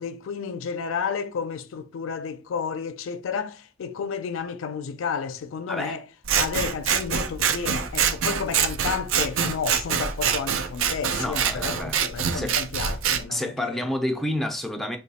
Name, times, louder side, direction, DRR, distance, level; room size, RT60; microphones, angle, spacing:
voice 1, 0.0-6.1 6.4-13.9, left 6 dB, 85° left, 0.4 m, -31 dB
Scissors, 6.2-13.2, right 7 dB, 90° right, 0.4 m, -25 dB
voice 2, 11.2-12.0 12.3-12.6 13.3-15.0, left 1 dB, ahead, 0.4 m, -29 dB
3.1 x 2.2 x 4.1 m
head